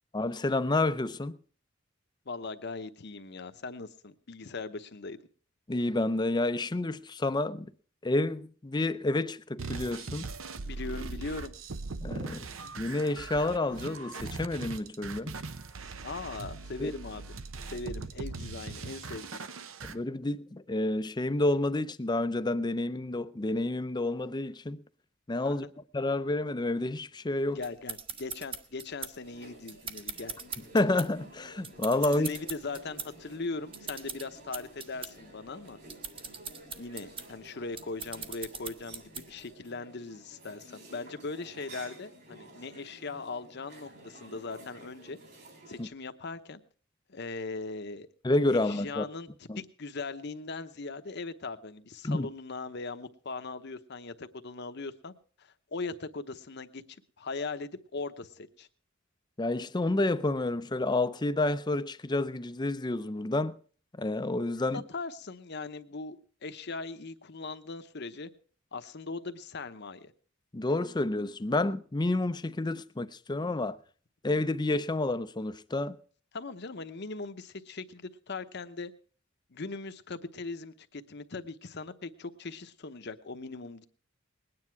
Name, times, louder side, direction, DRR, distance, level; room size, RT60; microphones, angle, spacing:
voice 1, 0.1-1.4 5.7-7.7 8.0-10.3 12.0-12.5 12.8-15.3 16.8-16.9 19.8-24.8 25.3-25.7 25.9-27.6 30.7-32.3 45.8-45.9 48.2-49.1 49.5-49.6 52.0-52.3 59.4-63.6 64.0-64.8 70.5-73.8 74.2-76.0, left 2 dB, 20° left, 0.5 m, -29 dB
voice 2, 2.3-5.2 10.6-11.6 16.0-17.3 17.7-19.3 25.4-25.7 27.5-30.3 32.0-35.8 36.8-45.2 45.7-46.6 47.1-48.1 48.5-55.1 55.4-56.8 57.2-58.7 64.7-68.3 68.7-70.1 76.3-78.9 79.5-83.9, left 3 dB, 55° left, 0.9 m, -40 dB
sound 1, 9.6-19.9, right 3 dB, 75° right, 0.8 m, -40 dB
sound 2, 27.6-39.5, right 5 dB, 25° right, 0.9 m, -42 dB
sound 3, 29.2-45.8, right 1 dB, 55° right, 4.1 m, -52 dB
20.0 x 9.7 x 4.6 m
head